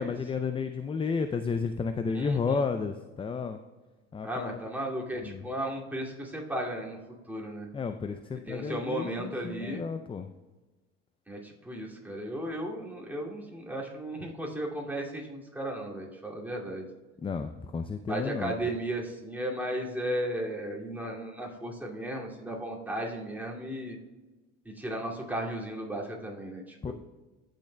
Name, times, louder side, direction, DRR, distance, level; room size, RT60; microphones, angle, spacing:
voice 1, 0.0-3.6 4.1-4.6 5.2-5.5 7.7-10.3 17.2-18.5 26.8-26.9, left 5 dB, 20° left, 8 dB, 0.4 m, -32 dB
voice 2, 2.1-2.6 4.2-7.0 7.3-7.7 8.5-9.9 11.3-16.8 18.1-24.0 24.8-26.9, right 1 dB, 5° right, -3 dB, 2.4 m, -35 dB
14.5 x 6.5 x 2.2 m, 1.2 s
supercardioid pair, 90°, 29 cm